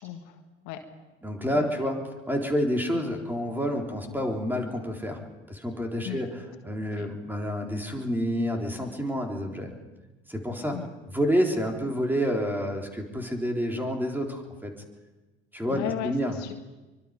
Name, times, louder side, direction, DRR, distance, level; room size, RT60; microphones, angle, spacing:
voice 1, 0.0-0.8 1.5-1.9 2.9-3.0 6.0-6.2 7.0-7.1 10.7-10.9 15.7-16.5, left 12 dB, 65° left, 6 dB, 1.8 m, -36 dB
voice 2, 1.2-2.0 2.3-5.2 5.5-6.3 6.6-9.7 10.3-10.8 11.1-14.7 15.5-16.4, equal, 5° right, 2 dB, 3.9 m, -28 dB
24.0 x 22.5 x 5.3 m, 1.2 s
hypercardioid pair, 60°, 31 cm